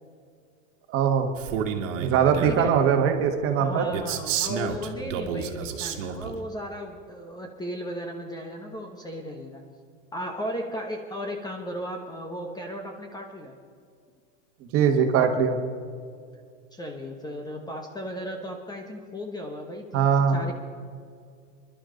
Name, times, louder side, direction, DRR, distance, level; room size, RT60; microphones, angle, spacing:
voice 1, 0.9-1.3 2.0-3.8 14.7-15.6 19.9-20.4, right 7 dB, 35° right, 5 dB, 1.6 m, -21 dB
Male speech man speaking, 1.4-2.7 3.9-6.4, right 8 dB, 65° right, 1.7 m, -30 dB
voice 2, 3.6-9.6 10.1-13.5 16.7-20.5, equal, 10° left, 3 dB, 1.0 m, -35 dB
22.0 x 11.5 x 3.9 m, 2.2 s
supercardioid pair, 140°, 40 cm